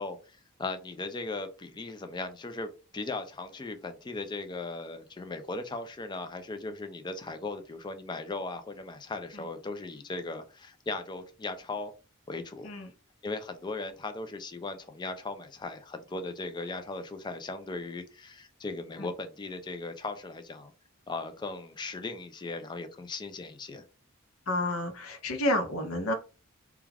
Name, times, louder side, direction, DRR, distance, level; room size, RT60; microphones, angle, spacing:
voice 1, 0.0-11.9 12.3-12.7 13.2-20.7 21.1-23.9, left 3 dB, 20° left, 9 dB, 0.3 m, -38 dB
voice 2, 24.5-26.1, left 1 dB, 80° left, 6 dB, 0.7 m, -30 dB
2.3 x 2.3 x 3.2 m, 0.34 s
head